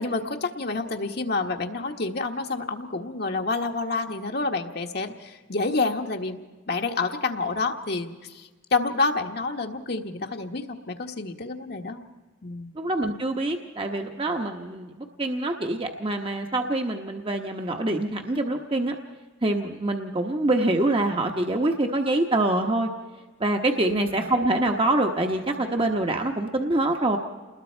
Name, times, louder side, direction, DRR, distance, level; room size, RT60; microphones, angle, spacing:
voice 1, 0.0-12.0 12.4-12.7 23.9-24.1, left 3 dB, 55° left, 3 dB, 1.2 m, -28 dB
voice 2, 12.7-14.9 15.2-18.9 19.4-22.9 23.4-27.2, right 2 dB, 30° right, 4 dB, 1.0 m, -25 dB
28.5 x 20.5 x 4.4 m, 1.3 s
head